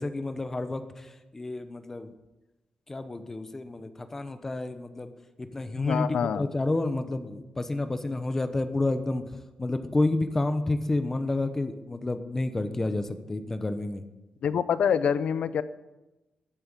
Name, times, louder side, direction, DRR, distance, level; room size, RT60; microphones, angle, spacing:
voice 1, 0.0-2.1 2.9-5.1 5.4-14.1, left 2 dB, 20° left, 9 dB, 1.0 m, -30 dB
voice 2, 5.8-6.5 14.4-15.6, left 7 dB, 75° left, 14 dB, 0.8 m, -26 dB
13.5 x 9.1 x 8.4 m, 1.0 s
wide cardioid pair, 165°, 2 cm